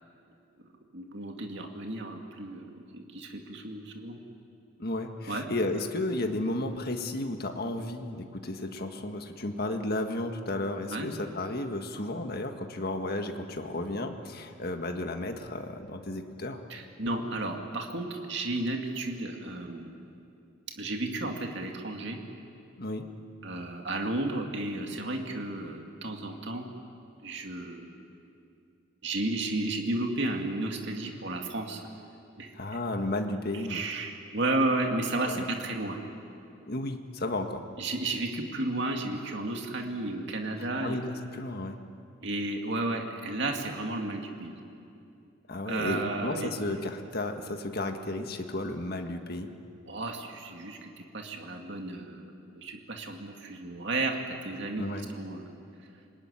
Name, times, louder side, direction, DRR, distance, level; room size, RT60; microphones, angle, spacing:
voice 1, 0.9-2.7 2.9-4.2 5.3-5.5 10.9-11.1 16.7-19.9 20.8-22.2 23.4-26.7 27.2-27.9 29.0-31.8 32.4-32.5 33.5-36.0 37.8-41.0 42.2-44.5 45.6-46.5 49.9-54.8 55.1-55.5, right 2 dB, 55° right, 2 dB, 2.3 m, -33 dB
voice 2, 4.8-16.6 22.8-23.1 32.5-33.8 35.2-35.4 36.6-37.7 40.6-41.8 45.5-49.5 54.8-55.1, left 2 dB, 45° left, 5 dB, 1.8 m, -33 dB
26.0 x 21.0 x 9.9 m, 2.6 s
head